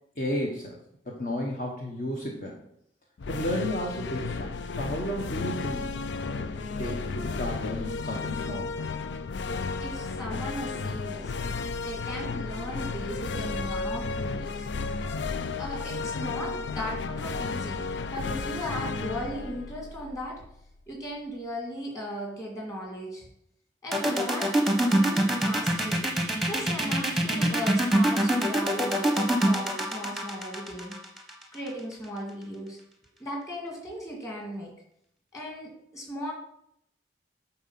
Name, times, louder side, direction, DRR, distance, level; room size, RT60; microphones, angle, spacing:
voice 1, 0.2-0.8 1.1-2.6 3.3-5.9 6.2-8.7, left 1 dB, 50° left, -1 dB, 1.2 m, -33 dB
sound 1, 3.2-20.6, left 4 dB, 90° left, 0.5 m, -33 dB
voice 2, 9.8-11.3 11.8-14.7 15.6-17.8 18.1-20.4 20.9-23.3 23.8-26.1 26.5-31.0 31.5-32.8 33.2-34.7 35.3-36.3, equal, 20° left, -1 dB, 2.5 m, -37 dB
sound 2, 23.9-31.7, right 1 dB, ahead, 1.0 m, -24 dB
9.3 x 4.2 x 5.8 m, 0.72 s
head